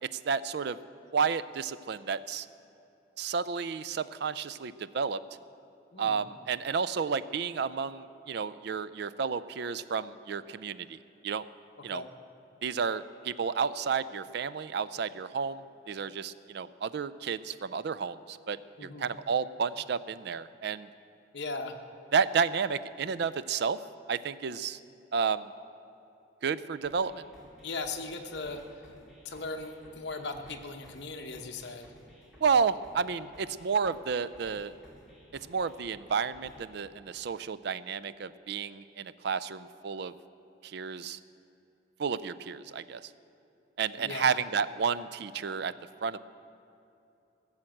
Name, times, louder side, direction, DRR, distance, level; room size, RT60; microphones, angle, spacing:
voice 1, 0.0-0.8 1.1-2.5 3.2-5.2 6.0-11.0 11.2-11.5 11.8-12.0 12.6-20.9 22.1-23.8 24.1-24.8 25.1-25.5 26.4-27.2 32.4-34.7 35.5-40.1 40.6-41.2 42.0-43.1 43.8-45.7 46.0-46.2, right 6 dB, 55° right, 16 dB, 0.4 m, -31 dB
voice 2, 5.9-6.2 11.9-12.1 18.8-19.1 21.3-21.8 27.6-28.6 29.2-31.9 44.0-44.4, left 3 dB, 55° left, 3 dB, 1.0 m, -38 dB
sound 1, 26.8-36.8, equal, 5° right, 2.5 m, -56 dB
15.5 x 7.3 x 7.7 m, 2.8 s
head